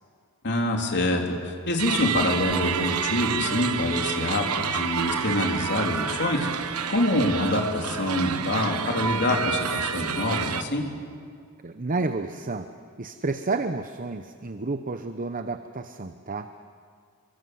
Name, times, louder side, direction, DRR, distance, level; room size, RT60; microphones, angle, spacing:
voice 1, 0.4-10.8, left 1 dB, 50° left, 1 dB, 3.6 m, -26 dB
sound 1, 1.8-10.6, right 7 dB, 80° right, 1.3 m, -29 dB
voice 2, 11.6-12.7 13.0-16.5, right 3 dB, 40° right, 8 dB, 0.9 m, -30 dB
28.5 x 23.5 x 7.9 m, 2.2 s
head